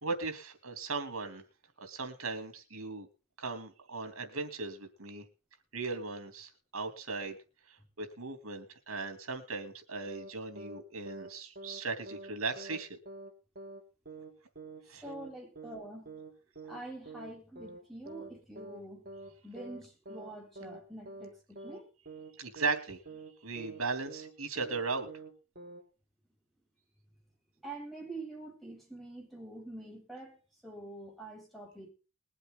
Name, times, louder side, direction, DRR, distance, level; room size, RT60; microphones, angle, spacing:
voice 1, 0.0-1.4 1.8-3.1 3.4-5.2 5.7-7.4 7.7-13.0 14.9-15.0 22.4-23.0 23.4-25.1, right 4 dB, 80° right, 3.2 m, -37 dB
sound 1, 10.1-10.3 10.6-10.8 11.1-11.3 11.6-11.8 12.1-12.3 12.6-12.8 13.1-13.3 13.6-13.8 14.1-14.3 14.6-14.8 15.1-15.3 15.6-15.8 16.1-16.3 16.6-16.8 17.1-17.3 17.6-17.8 18.1-18.3 18.6-18.8 19.1-19.3 19.6-19.8 20.1-20.3 20.6-20.8 21.1-21.3 21.6-21.8 22.1-22.3 22.6-22.8 23.1-23.3 23.6-23.8 24.1-24.3 24.6-24.8 25.1-25.3 25.6-25.8, right 3 dB, 45° right, 3.6 m, -46 dB
voice 2, 15.0-16.1 16.7-19.1 19.4-21.9 27.6-30.4 30.6-31.9, right 2 dB, ahead, 7.6 m, -46 dB
21.5 x 8.0 x 4.0 m
head